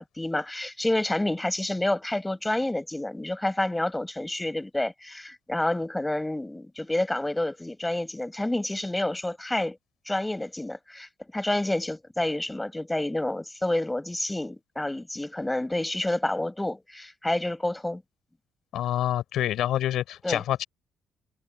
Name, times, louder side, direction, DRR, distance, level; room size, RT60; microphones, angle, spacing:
voice 1, 0.0-9.8 10.1-11.1 11.3-18.0 20.2-20.4, left 1 dB, 10° left, 7.3 m, -29 dB
voice 2, 18.7-20.6, left 12 dB, 80° left, 5.2 m, -27 dB
cardioid pair, 90°, 0 cm